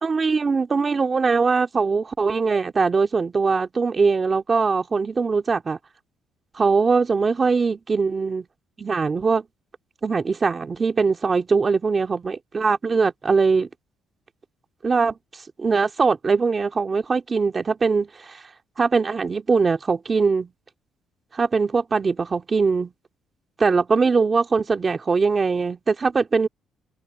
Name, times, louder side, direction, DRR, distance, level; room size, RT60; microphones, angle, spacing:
voice 1, 0.0-5.8 6.5-8.4 8.8-9.4 10.0-13.7 14.8-18.4 18.8-20.5 21.3-22.9 23.6-26.5, right 4 dB, 30° right, 2.4 m, -21 dB
cardioid pair, 125°, 0 cm